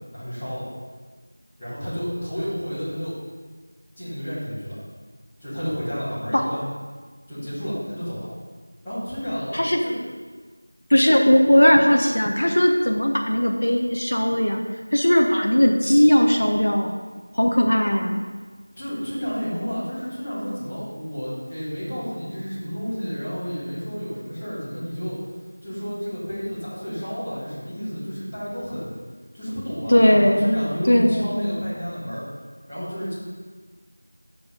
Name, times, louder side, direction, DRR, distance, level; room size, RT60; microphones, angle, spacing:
voice 1, 0.1-0.6 1.6-3.1 3.9-4.8 5.4-6.6 7.3-8.3 8.8-9.9 18.7-25.2 25.6-28.9 29.3-32.2 32.7-33.1, equal, ahead, -22 dB, 1.4 m, -30 dB
voice 2, 10.9-14.6 14.9-17.0 17.3-18.2 29.9-30.4 30.9-31.5, equal, 45° left, 3 dB, 0.6 m, -18 dB
6.9 x 6.3 x 5.2 m, 1.5 s
figure-of-eight pair, 180°, 0 cm